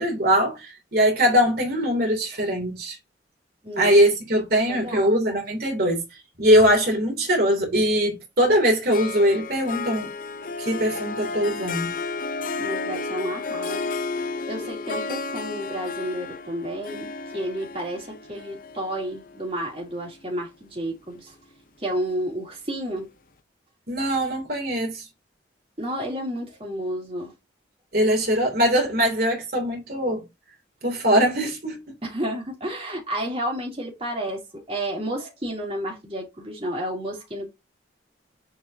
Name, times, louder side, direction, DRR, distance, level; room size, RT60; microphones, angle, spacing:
voice 1, 0.0-3.0 3.8-6.0 6.4-10.1 10.6-11.9 23.9-25.1 27.9-30.2 30.8-31.8, equal, 55° right, 2.8 m, -21 dB
voice 2, 3.6-4.0 4.7-5.1 12.6-13.9 14.2-21.3 21.8-23.1 25.8-27.3 32.0-37.5, right 1 dB, 30° right, 2.8 m, -31 dB
Harp, 8.9-20.3, left 4 dB, 45° left, 0.7 m, -32 dB
7.4 x 4.7 x 2.7 m
head